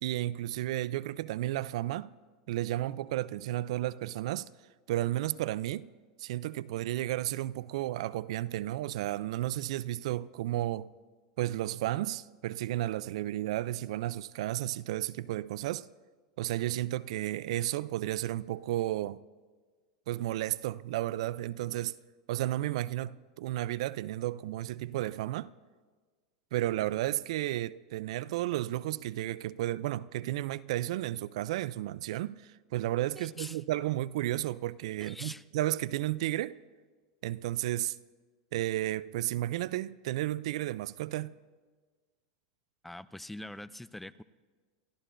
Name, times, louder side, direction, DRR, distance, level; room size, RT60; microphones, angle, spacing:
voice 1, 0.0-2.1 2.5-4.5 4.9-5.9 6.2-10.9 11.4-15.9 16.4-19.2 20.1-22.0 22.3-25.5 26.5-36.6 37.2-38.0 38.5-41.3, right 15 dB, 70° right, 0.4 m, -33 dB
voice 2, 33.2-33.6 35.0-35.4 42.8-44.2, left 1 dB, 5° left, 0.3 m, -44 dB
28.5 x 14.0 x 2.6 m
supercardioid pair, 130°, 3 cm